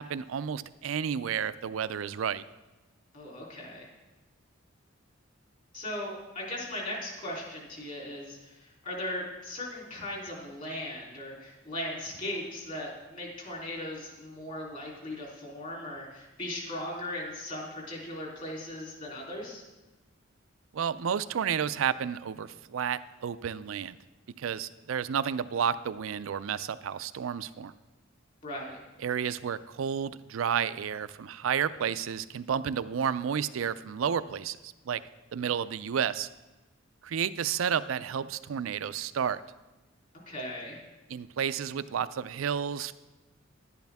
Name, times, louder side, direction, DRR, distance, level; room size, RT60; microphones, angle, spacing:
voice 1, 0.0-2.4 20.7-24.0 24.4-27.7 29.0-35.0 35.3-36.3 37.0-39.4 41.1-42.9, right 8 dB, 85° right, 15 dB, 0.4 m, -31 dB
voice 2, 3.1-3.9 5.7-19.6 28.4-28.8 40.3-40.8, left 1 dB, 40° left, -2 dB, 3.3 m, -38 dB
11.0 x 10.5 x 3.5 m, 1.1 s
head